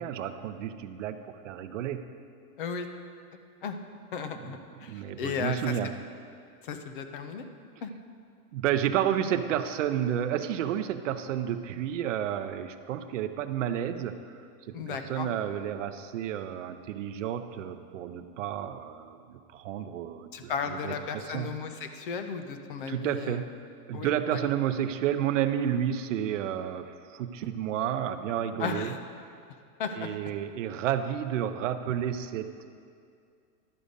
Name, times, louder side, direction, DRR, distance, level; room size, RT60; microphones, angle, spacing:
voice 1, 0.0-2.0 4.8-5.9 8.5-14.2 14.7-21.5 22.9-23.5 23.9-28.9 30.0-32.7, right 10 dB, 50° right, 9 dB, 0.6 m, -31 dB
voice 2, 4.1-5.9 6.6-7.5 7.8-7.9 14.7-15.3 20.3-23.4 23.9-24.4 28.6-29.0 29.8-30.3, left 6 dB, 35° left, 8 dB, 0.5 m, -35 dB
11.5 x 6.7 x 5.1 m, 2.3 s
supercardioid pair, 165°, 48 cm